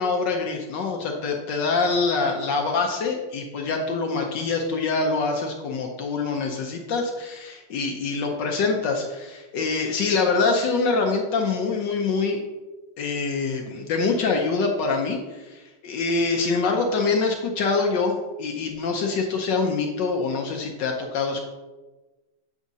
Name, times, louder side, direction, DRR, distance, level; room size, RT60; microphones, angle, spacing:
voice 1, 0.0-12.4 13.0-21.4, left 4 dB, 70° left, 2 dB, 1.2 m, -25 dB
8.1 x 4.8 x 2.7 m, 1.2 s
omnidirectional pair, 2.3 m